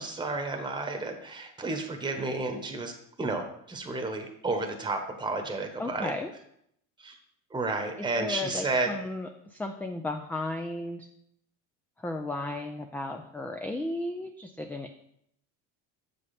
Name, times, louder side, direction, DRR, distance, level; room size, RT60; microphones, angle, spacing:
voice 1, 0.0-2.9 3.2-6.1 7.0-7.1 7.5-8.9, right 3 dB, 10° right, 4 dB, 1.0 m, -31 dB
voice 2, 5.8-6.3 8.0-11.1 12.0-14.9, left 2 dB, 5° left, 5 dB, 0.3 m, -34 dB
6.9 x 5.2 x 4.2 m, 0.72 s
supercardioid pair, 100°, 37 cm